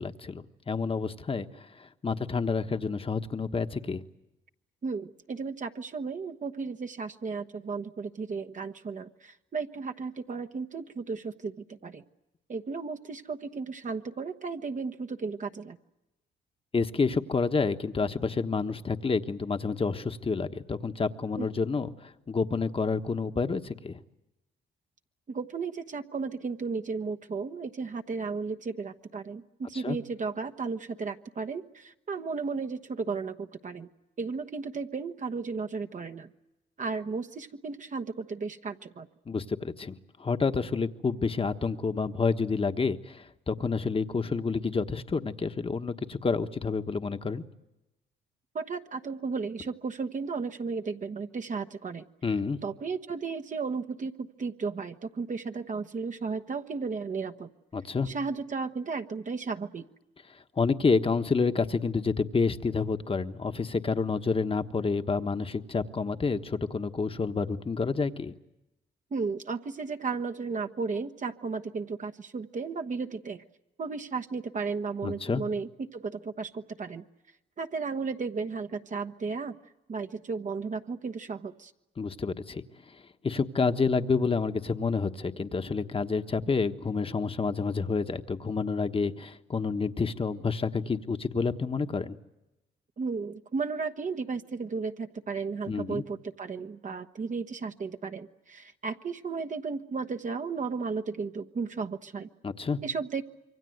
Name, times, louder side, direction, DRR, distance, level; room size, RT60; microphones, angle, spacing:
voice 1, 0.0-1.5 2.0-4.0 16.7-24.0 29.8-30.0 39.3-39.9 40.2-47.4 52.2-52.6 57.7-58.1 60.6-68.3 75.0-75.4 82.0-82.6 83.2-92.2 95.7-96.0 102.4-102.8, left 4 dB, 25° left, 8 dB, 1.3 m, -29 dB
voice 2, 4.8-12.0 12.5-15.8 21.4-21.5 25.3-33.9 34.2-36.3 36.8-39.1 48.5-52.0 52.6-57.5 58.0-59.8 69.1-73.4 73.8-77.0 77.6-79.6 79.9-81.7 93.0-102.3 102.8-103.2, right 4 dB, 40° right, 6 dB, 1.2 m, -34 dB
27.0 x 24.0 x 7.9 m, 0.96 s
cardioid pair, 90°, 20 cm